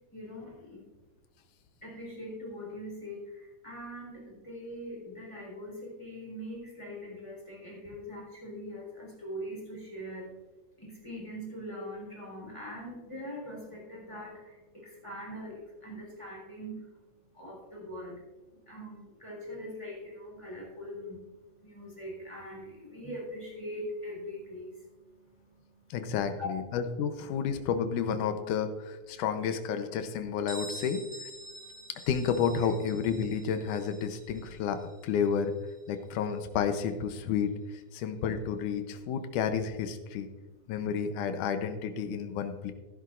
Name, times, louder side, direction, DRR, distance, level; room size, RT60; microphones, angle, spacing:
voice 1, 0.1-0.9 1.8-10.3 10.8-16.8 17.4-18.2 18.7-21.2 21.6-24.7 26.1-26.5, equal, 10° left, -4 dB, 3.7 m, -42 dB
voice 2, 25.9-31.3 31.9-35.5 35.9-40.3 40.7-42.7, left 7 dB, 90° left, 8 dB, 2.4 m, -31 dB
Bell, 30.5-36.0, right 1 dB, 15° right, 1.6 m, -47 dB
15.0 x 10.5 x 2.5 m, 1.2 s
omnidirectional pair, 3.5 m